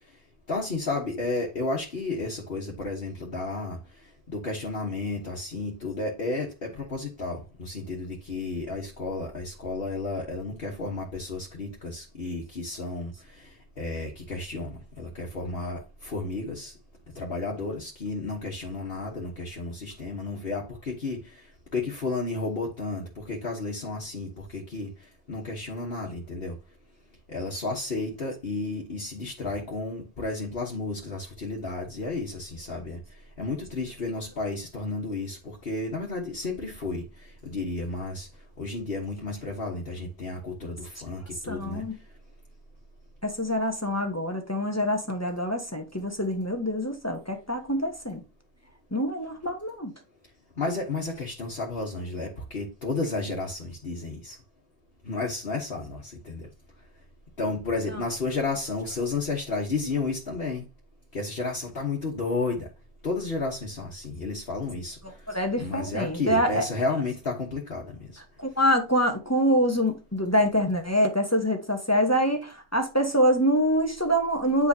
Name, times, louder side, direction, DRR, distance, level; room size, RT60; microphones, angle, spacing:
voice 1, 0.5-3.8 4.3-16.7 17.1-21.5 21.7-24.9 25.3-26.6 27.3-33.0 33.4-38.3 38.6-41.8 50.6-54.4 55.0-56.5 57.4-60.6 61.1-62.7 63.0-65.2 65.6-68.2, left 3 dB, 60° left, 1.5 m, -32 dB
voice 2, 41.5-42.0 43.2-48.2 48.9-49.9 57.9-58.1 65.3-66.7 68.4-74.7, equal, 15° left, 1.1 m, -25 dB
8.7 x 4.9 x 2.8 m
omnidirectional pair, 1.1 m